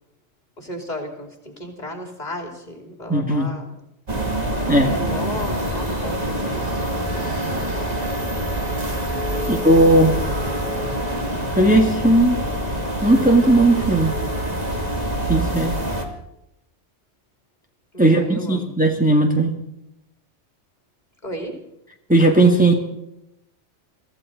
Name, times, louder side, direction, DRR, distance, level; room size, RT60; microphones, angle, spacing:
voice 1, 0.6-3.7 4.8-6.8 9.4-9.6 17.9-18.7 21.2-21.5, left 1 dB, 35° left, 3 dB, 2.9 m, -34 dB
voice 2, 3.1-3.5 4.7-5.2 9.5-10.2 11.6-12.4 13.0-14.2 15.3-15.8 18.0-19.6 22.1-22.7, right 1 dB, 5° right, 1 dB, 1.8 m, -16 dB
sound 1, 4.1-16.1, right 1 dB, 35° right, 2.3 m, -25 dB
24.0 x 15.0 x 3.9 m, 0.86 s
omnidirectional pair, 1.2 m